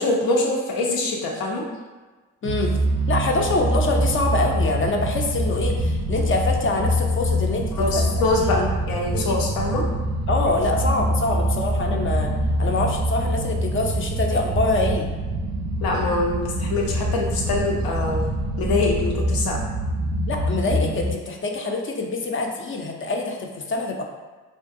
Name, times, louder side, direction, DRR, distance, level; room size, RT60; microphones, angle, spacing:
voice 1, 0.0-1.6 7.7-9.8 15.8-18.2 18.6-19.6, left 2 dB, 75° left, 0 dB, 0.6 m, -24 dB
voice 2, 2.4-2.8 3.1-8.0 8.4-8.7 9.1-9.4 10.3-12.3 12.6-15.1 20.3-24.0, left 3 dB, 35° left, 2 dB, 0.4 m, -25 dB
sound 1, 2.4-21.1, right 1 dB, 50° right, 0.4 m, -25 dB
2.5 x 2.2 x 2.5 m, 1.3 s
supercardioid pair, 45°, 36 cm